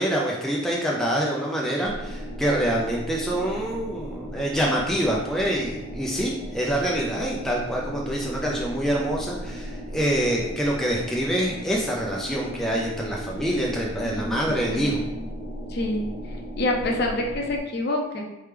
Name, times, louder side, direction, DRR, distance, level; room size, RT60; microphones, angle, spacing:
voice 1, 0.0-15.0, right 1 dB, ahead, -3 dB, 0.4 m, -26 dB
sound 1, 1.8-17.6, equal, 75° left, 1.2 m, -36 dB
voice 2, 14.0-15.2 15.7-16.1 16.6-18.2, left 2 dB, 50° left, 0 dB, 0.6 m, -27 dB
4.3 x 3.3 x 3.3 m, 0.98 s
head